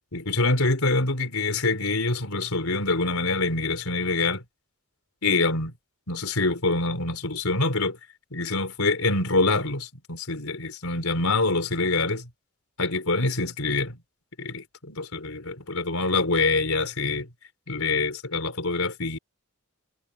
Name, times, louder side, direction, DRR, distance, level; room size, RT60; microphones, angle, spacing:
voice 1, 0.1-4.4 5.2-5.7 6.1-8.0 8.3-12.3 12.8-14.0 14.4-17.3 17.7-19.2, left 3 dB, 70° left, 4.3 m, -25 dB
head